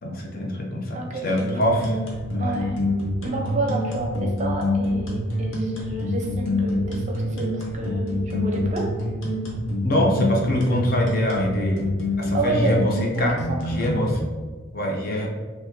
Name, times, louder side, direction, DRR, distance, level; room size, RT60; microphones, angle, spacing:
voice 1, 0.0-2.0 2.3-2.5 9.8-11.9 12.2-13.4 13.7-14.2 14.7-15.3, left 1 dB, 45° left, 0 dB, 0.6 m, -24 dB
voice 2, 0.9-1.4 2.4-2.8 3.2-8.9 12.3-12.8 13.1-14.0, right 2 dB, 35° right, 0 dB, 0.5 m, -29 dB
sound 1, 1.4-14.2, left 1 dB, 75° left, 0.8 m, -26 dB
2.9 x 2.7 x 3.5 m, 1.4 s
head